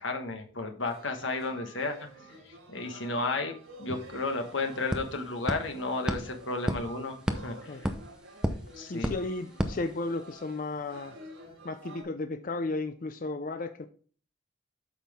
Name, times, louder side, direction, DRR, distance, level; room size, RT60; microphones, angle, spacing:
voice 1, 0.0-2.1 2.4-3.5 3.8-7.9 8.7-9.1, left 3 dB, 70° left, 5 dB, 1.3 m, -33 dB
sound 1, 0.8-12.0, right 2 dB, 85° right, 3.4 m, -50 dB
sound 2, 3.8-3.9 4.1-10.5, equal, 5° right, 0.6 m, -35 dB
voice 2, 8.9-11.1 11.6-13.9, left 3 dB, 40° left, 9 dB, 0.4 m, -34 dB
8.4 x 6.0 x 3.5 m, 0.43 s
head